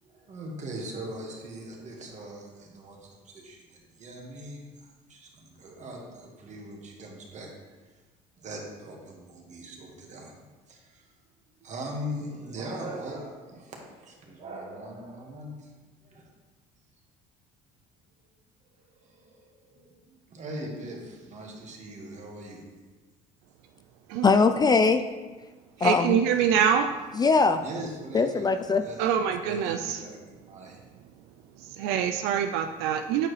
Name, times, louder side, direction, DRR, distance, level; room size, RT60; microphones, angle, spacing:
voice 1, 0.0-7.5 8.4-11.1 11.6-15.7 16.0-16.3 18.7-22.7 26.3-26.5 27.6-30.8, right 1 dB, 45° right, -1 dB, 1.7 m, -41 dB
voice 2, 24.2-25.1 25.8-26.2 27.1-27.6 28.1-28.8, left 4 dB, 25° left, 8 dB, 0.3 m, -21 dB
voice 3, 25.8-26.9 29.0-29.8 31.8-33.3, right 8 dB, 80° right, 6 dB, 0.4 m, -24 dB
8.6 x 4.6 x 3.2 m, 1.3 s
supercardioid pair, 85°, 17 cm